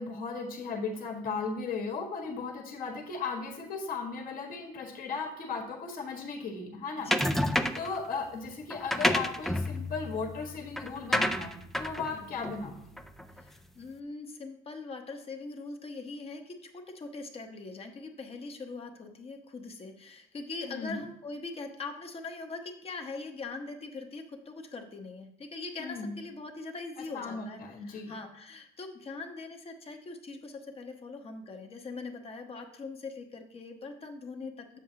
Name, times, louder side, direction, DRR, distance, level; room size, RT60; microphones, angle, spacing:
voice 1, 0.0-12.8 20.6-21.0 25.8-26.2 27.1-28.2 34.7-34.8, left 4 dB, 60° left, 1 dB, 1.6 m, -36 dB
sound 1, 7.1-8.0 8.7-13.4, equal, ahead, 0.4 m, -30 dB
voice 2, 13.3-27.6 27.8-34.8, left 3 dB, 35° left, 4 dB, 1.0 m, -42 dB
7.8 x 7.2 x 2.8 m, 0.73 s
cardioid pair, 110°, 17 cm